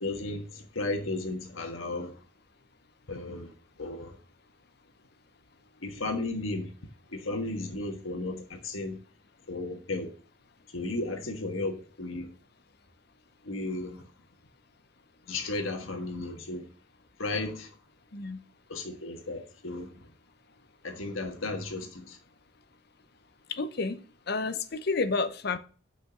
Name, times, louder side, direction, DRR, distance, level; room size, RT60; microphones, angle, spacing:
voice 1, 0.0-2.1 3.1-3.5 3.8-4.2 5.8-6.7 7.1-9.0 9.5-10.1 10.7-12.3 13.4-14.1 15.3-16.7 17.2-17.7 18.7-20.1 20.8-22.2, left 2 dB, 85° left, 1.5 m, -34 dB
voice 2, 23.5-25.6, left 4 dB, 55° left, 0.8 m, -30 dB
6.2 x 5.1 x 6.7 m
head